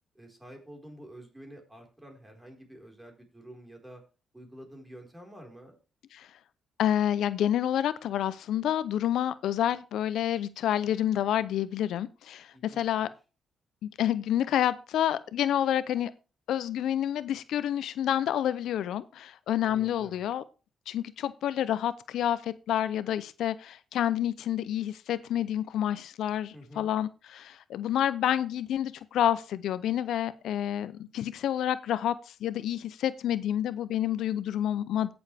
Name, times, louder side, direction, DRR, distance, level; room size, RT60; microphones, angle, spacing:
voice 1, 0.1-4.0 4.3-5.8 12.5-13.1 19.6-20.2 26.5-26.9, right 1 dB, 10° right, 2 dB, 4.4 m, -49 dB
voice 2, 6.8-13.1 13.8-16.1 16.5-20.4 20.9-32.2 32.4-35.1, left 11 dB, 85° left, 15 dB, 0.6 m, -29 dB
17.0 x 7.0 x 3.4 m, 0.33 s
cardioid pair, 90°, 0 cm